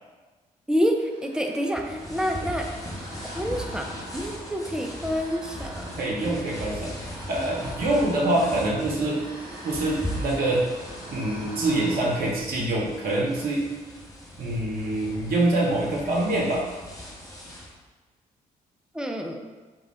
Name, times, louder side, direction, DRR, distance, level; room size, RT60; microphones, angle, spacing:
voice 1, 0.7-2.7 3.0-6.0 18.9-19.4, equal, 5° right, 2 dB, 0.4 m, -28 dB
sound 1, 0.8-12.1, equal, 25° right, 1.2 m, -42 dB
sound 2, 1.7-17.7, equal, 15° left, 0.9 m, -39 dB
voice 2, 6.0-6.9 7.3-9.2 9.6-10.6 11.1-13.6 14.4-16.6, right 1 dB, 50° right, -3 dB, 0.7 m, -25 dB
3.3 x 2.2 x 3.6 m, 1.3 s
figure-of-eight pair, 40°, 19 cm